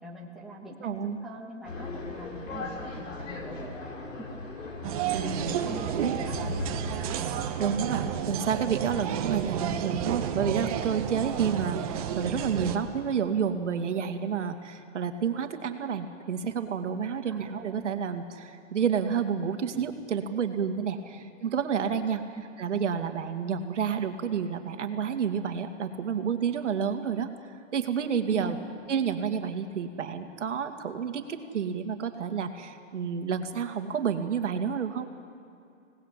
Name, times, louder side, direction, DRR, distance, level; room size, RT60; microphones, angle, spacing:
voice 1, 0.0-3.7 4.2-4.3 5.0-6.5 17.2-17.6 21.0-21.2 22.3-22.4 28.3-28.7, right 1 dB, ahead, -4 dB, 1.6 m, -43 dB
voice 2, 0.8-1.2 5.1-5.7 6.0-6.1 7.6-22.2 22.6-27.3 27.7-28.6 28.9-35.1, right 7 dB, 70° right, 7 dB, 2.3 m, -30 dB
sound 1, 1.6-7.8, left 3 dB, 85° left, 4.9 m, -38 dB
sound 2, 4.8-12.8, right 9 dB, 30° right, 1.4 m, -31 dB
26.5 x 19.0 x 8.4 m, 2.6 s
hypercardioid pair, 165°, 38 cm